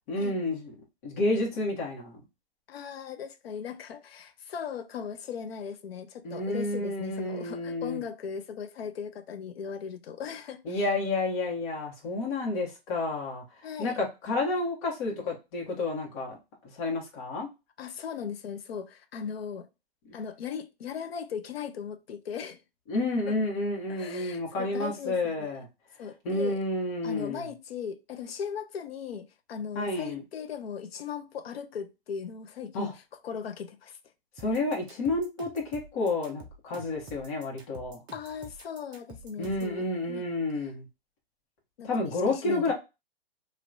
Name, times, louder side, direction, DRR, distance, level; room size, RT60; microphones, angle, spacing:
voice 1, 0.1-0.7 1.0-2.2 6.2-8.0 10.6-13.4 13.8-16.4 16.7-17.5 22.9-25.7 26.2-27.5 29.7-30.2 32.7-32.9 34.4-38.0 39.4-40.8 41.8-42.7, left 2 dB, 40° left, 1.5 m, -30 dB
voice 2, 2.7-10.9 13.6-14.0 17.8-19.7 20.1-22.6 23.3-23.4 23.9-25.6 26.0-26.6 27.0-34.0 38.1-40.3 41.8-42.7, left 7 dB, 75° left, 0.7 m, -38 dB
sound 1, 34.4-39.7, right 2 dB, 15° right, 0.5 m, -48 dB
3.1 x 2.8 x 2.5 m
hypercardioid pair, 140°, 31 cm